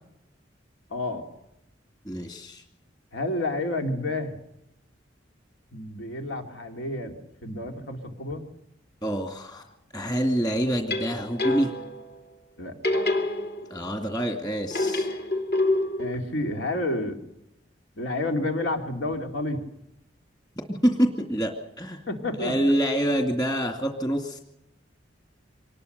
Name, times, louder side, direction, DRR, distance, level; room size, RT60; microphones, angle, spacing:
voice 1, 0.9-1.2 3.1-4.4 5.7-7.1 7.4-8.5 12.6-13.0 16.0-17.2 18.0-19.6 22.1-22.5, left 2 dB, 80° left, 4 dB, 2.7 m, -30 dB
voice 2, 2.1-2.6 9.0-9.7 9.9-11.7 13.7-15.2 20.7-22.0 22.4-24.4, equal, 20° left, 3 dB, 2.3 m, -26 dB
sound 1, 10.7-12.1 12.8-14.0 14.7-16.1, left 2 dB, 55° left, 2.9 m, -27 dB
25.0 x 20.0 x 6.7 m, 0.84 s
head